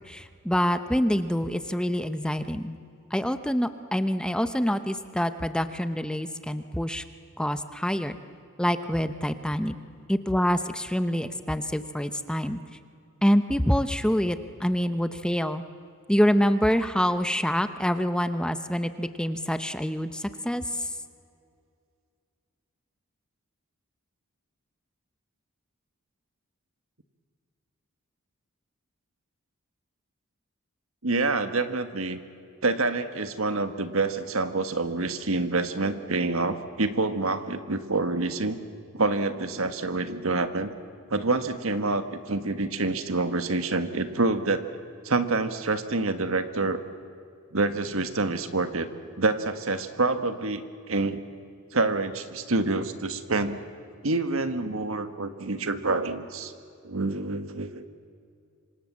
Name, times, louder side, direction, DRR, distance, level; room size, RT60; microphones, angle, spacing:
voice 1, 0.1-2.8 3.1-7.0 7.4-8.2 8.6-9.7 10.1-12.6 13.2-15.6 16.1-20.9, equal, 5° left, 10 dB, 0.8 m, -26 dB
voice 2, 31.0-32.2 32.6-38.6 38.9-40.7 41.1-44.7 45.0-46.8 47.5-48.9 49.2-51.2 51.7-53.6 54.0-56.5 56.8-57.8, right 3 dB, 70° right, 9 dB, 1.6 m, -27 dB
27.0 x 25.5 x 7.5 m, 2.4 s
head